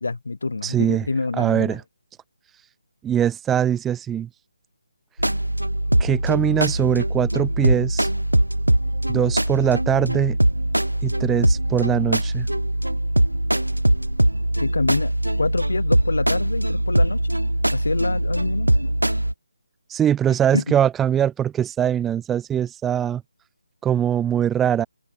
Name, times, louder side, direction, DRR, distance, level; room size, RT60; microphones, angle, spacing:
voice 1, 0.0-1.8 14.6-15.1 15.4-17.4 17.7-18.9 20.5-20.8, left 3 dB, 65° left, 2.7 m, -26 dB
voice 2, 0.6-1.1 1.4-1.8 3.0-4.3 6.0-8.1 9.1-10.4 11.0-12.5 19.9-23.2 23.8-24.9, right 9 dB, 10° right, 1.3 m, -22 dB
sound 1, 5.2-19.3, right 1 dB, 90° right, 0.7 m, -22 dB
open air
figure-of-eight pair, 150°, 0 cm